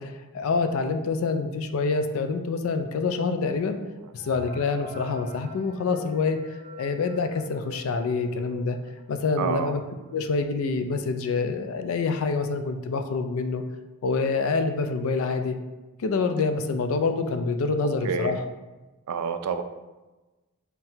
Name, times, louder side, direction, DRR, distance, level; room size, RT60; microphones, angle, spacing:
voice 1, 0.0-3.8 4.1-6.4 6.8-8.8 9.1-9.8 10.1-13.6 14.0-15.6 16.0-18.4, left 4 dB, 70° left, 7 dB, 0.3 m, -26 dB
sound 1, 4.1-9.6 10.0-10.1 10.3-10.5 11.2-11.3 11.7-12.0, left 1 dB, 50° right, 1.2 m, -45 dB
voice 2, 9.4-9.7 18.0-18.4 19.1-19.6, right 6 dB, 90° right, 9 dB, 0.3 m, -28 dB
5.5 x 2.2 x 2.7 m, 1.1 s
head